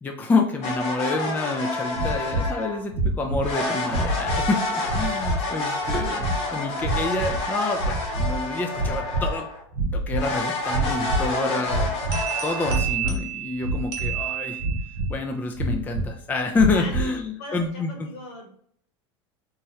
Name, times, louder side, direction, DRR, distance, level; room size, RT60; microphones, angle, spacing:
voice 1, 0.0-9.5 9.9-11.9 12.4-14.6 15.1-18.1, left 3 dB, 10° left, 3 dB, 0.3 m, -27 dB
sound 1, 0.6-2.8 3.4-9.6 10.2-12.8, left 2 dB, 45° left, 1.0 m, -29 dB
sound 2, 1.9-2.5 2.9-3.5 3.9-4.5 4.8-5.4 5.8-6.4 6.8-7.5 7.7-8.4 8.7-9.4 9.7-10.3 10.7-11.3 11.6-12.2 12.6-13.2 13.6-14.2 14.6-15.2 15.6-16.1 16.5-17.1, right 2 dB, 90° right, 0.9 m, -26 dB
sound 3, 12.1-15.1, right 14 dB, 70° right, 0.8 m, -31 dB
voice 2, 16.7-17.1 17.4-18.5, left 2 dB, 70° left, 0 dB, 1.3 m, -39 dB
3.0 x 2.2 x 2.8 m, 0.63 s
hypercardioid pair, 105°, 15 cm